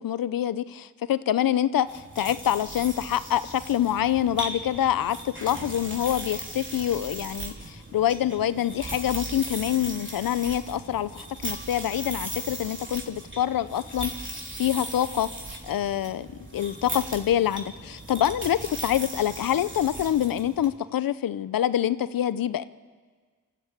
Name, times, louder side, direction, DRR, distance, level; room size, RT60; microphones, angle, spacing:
voice 1, 0.0-15.3 15.6-16.3 16.5-22.6, left 11 dB, 90° left, 15 dB, 0.6 m, -26 dB
sound 1, 1.8-20.7, right 1 dB, 35° right, 3.3 m, -38 dB
25.5 x 13.5 x 8.4 m, 1.5 s
cardioid pair, 40°, 33 cm